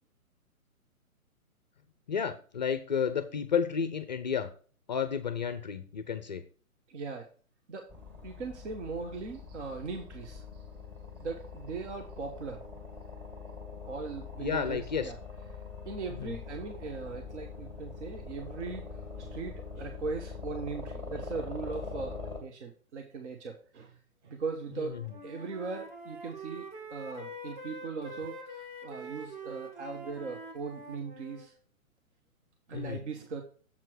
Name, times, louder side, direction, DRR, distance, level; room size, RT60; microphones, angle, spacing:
voice 1, 2.1-4.5 4.9-6.4 14.4-15.1 16.2-16.3 24.8-25.0 32.7-33.0, left 7 dB, 30° left, 11 dB, 0.5 m, -31 dB
voice 2, 6.9-7.3 7.7-7.9 8.2-10.6 11.2-12.6 13.8-15.2 15.8-18.8 19.2-24.0 24.2-31.5 32.7-33.4, right 4 dB, 50° right, 4 dB, 1.3 m, -39 dB
sound 1, 7.9-22.4, left 4 dB, 15° right, 2.1 m, -43 dB
Wind instrument woodwind instrument, 24.7-31.5, right 2 dB, 30° right, 1.6 m, -45 dB
7.4 x 4.5 x 6.2 m, 0.41 s
figure-of-eight pair, 135°, 43 cm